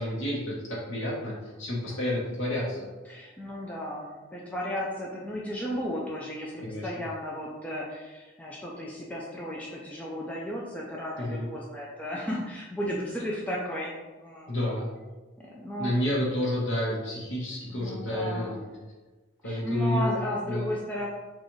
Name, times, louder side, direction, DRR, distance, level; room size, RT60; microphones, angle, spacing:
voice 1, 0.0-2.9 6.6-6.8 11.2-11.5 14.5-14.9 15.8-18.6 19.4-20.1 20.5-20.6, left 1 dB, 85° left, -6 dB, 1.1 m, -30 dB
voice 2, 3.0-13.9 14.2-14.5 15.4-15.9 17.7-18.6 19.4-21.1, equal, 5° left, -4 dB, 0.4 m, -34 dB
6.2 x 2.5 x 3.1 m, 1.2 s
head